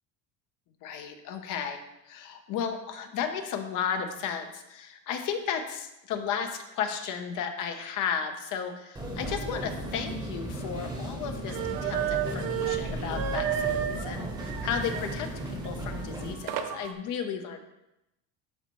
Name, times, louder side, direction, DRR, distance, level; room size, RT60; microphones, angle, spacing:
voice 1, 0.8-1.8 2.1-15.3 15.6-17.6, left 7 dB, 55° left, 5 dB, 0.8 m, -34 dB
sound 1, 8.9-16.3, right 1 dB, 10° right, 1.0 m, -35 dB
sound 2, 11.5-16.9, right 10 dB, 60° right, 0.7 m, -33 dB
11.5 x 4.1 x 3.0 m, 0.89 s
cardioid pair, 150°, 38 cm